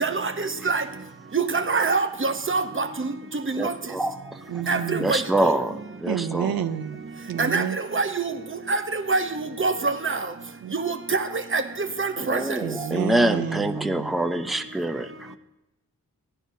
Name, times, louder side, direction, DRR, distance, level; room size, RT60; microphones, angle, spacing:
voice 1, 1.3-2.8 3.5-3.7 4.7-5.2 7.4-7.6 7.9-8.1 8.7-8.8 9.1-9.2 9.6-10.2 10.8-11.2 11.5-11.6 12.0-12.4, right 4 dB, 35° right, 0.9 m, -24 dB
voice 2, 3.6-4.4 5.0-6.5 12.2-15.3, right 1 dB, ahead, 0.6 m, -26 dB
voice 3, 4.5-5.2 6.1-7.0 7.3-7.8 10.6-10.7 12.6-14.2, right 8 dB, 85° right, 0.5 m, -29 dB
15.0 x 10.0 x 2.7 m
cardioid pair, 55°, 35 cm